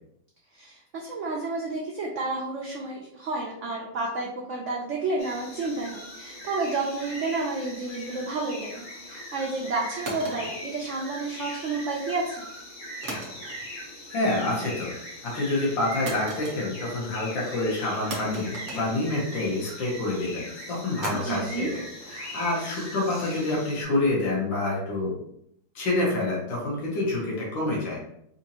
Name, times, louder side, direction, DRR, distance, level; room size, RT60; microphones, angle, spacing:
voice 1, 0.5-12.4 21.1-21.7, right 3 dB, 80° right, -1 dB, 0.6 m, -31 dB
sound 1, 5.2-23.8, left 1 dB, 55° left, 1.6 m, -40 dB
sound 2, 10.1-11.5 13.0-13.9 14.2-14.6 16.1-17.0 17.3-17.4 18.1-19.6 21.0-24.0, right 2 dB, 55° right, 1.3 m, -40 dB
voice 2, 14.1-14.9 15.2-25.1 25.8-28.0, left 2 dB, 85° left, -4 dB, 1.8 m, -27 dB
4.2 x 2.6 x 2.8 m, 0.74 s
omnidirectional pair, 2.0 m